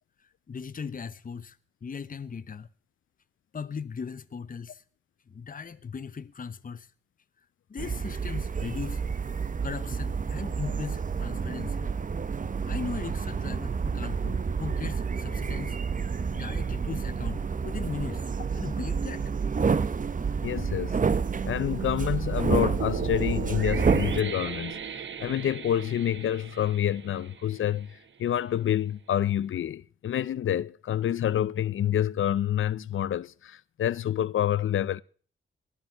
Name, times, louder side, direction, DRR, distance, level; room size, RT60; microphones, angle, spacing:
voice 1, 0.5-2.7 3.5-4.8 5.3-6.9 7.7-9.1 9.6-11.9 12.6-15.8 16.3-19.3, left 6 dB, 40° left, 1.0 m, -38 dB
sound 1, 7.8-24.2, right 5 dB, 40° right, 0.8 m, -29 dB
voice 2, 20.4-21.0 21.4-24.8 25.2-35.0, left 10 dB, 70° left, 0.6 m, -28 dB
sound 2, 22.8-28.0, right 7 dB, 60° right, 1.3 m, -37 dB
20.0 x 12.0 x 4.6 m
cardioid pair, 65°, 21 cm